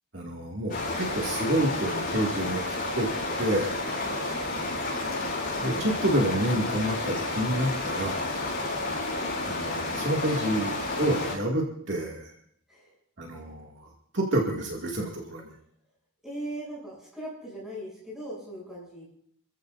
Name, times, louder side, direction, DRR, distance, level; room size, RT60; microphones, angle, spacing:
voice 1, 0.1-3.1 3.4-3.7 5.6-8.2 9.4-12.3 13.2-15.5, right 1 dB, 55° right, -2 dB, 2.4 m, -29 dB
sound 1, 0.7-11.3, left 2 dB, 40° left, 7.6 m, -31 dB
voice 2, 4.0-4.7 12.7-13.0 16.2-19.0, right 1 dB, ahead, -5 dB, 7.9 m, -39 dB
29.5 x 14.5 x 2.7 m, 0.68 s
head